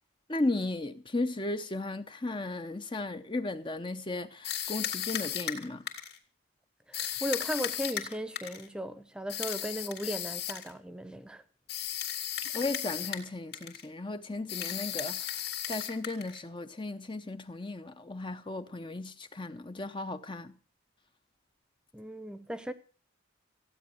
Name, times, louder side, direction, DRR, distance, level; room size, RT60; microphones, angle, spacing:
voice 1, 0.3-5.9 12.4-20.5, left 2 dB, 25° left, 0.8 m, -35 dB
sound 1, 4.4-6.2 6.9-8.7 9.3-10.7 11.7-13.3 13.5-13.9 14.5-16.4, left 10 dB, 50° left, 2.8 m, -35 dB
voice 2, 6.9-11.4 21.9-22.7, equal, 5° right, 0.9 m, -36 dB
15.5 x 9.4 x 7.7 m
head